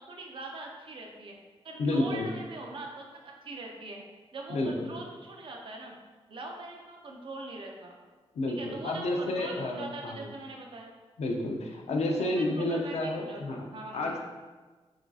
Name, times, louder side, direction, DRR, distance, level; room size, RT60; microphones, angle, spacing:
voice 1, 0.0-1.4 1.6-4.0 4.3-6.0 6.3-7.9 8.6-10.9 12.1-13.4 13.7-14.2, right 2 dB, 50° right, 1 dB, 0.5 m, -42 dB
voice 2, 1.8-2.3 4.5-4.9 8.3-10.3 11.2-13.7 13.9-14.2, left 1 dB, 75° left, 1 dB, 0.5 m, -30 dB
4.9 x 2.7 x 2.3 m, 1.3 s
wide cardioid pair, 160°, 11 cm